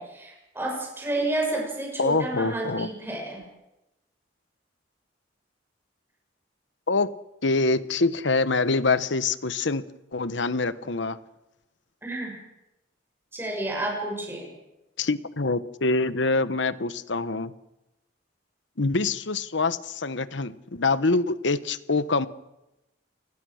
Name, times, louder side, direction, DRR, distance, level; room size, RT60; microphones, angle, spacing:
voice 1, 0.0-3.4 12.0-12.3 13.3-14.5, right 2 dB, 10° right, -1 dB, 6.9 m, -30 dB
voice 2, 2.0-2.9 6.9-7.1 7.4-9.8 10.1-11.2 15.0-17.5 18.8-22.3, left 3 dB, 75° left, 15 dB, 1.1 m, -25 dB
28.5 x 20.5 x 6.5 m, 0.94 s
head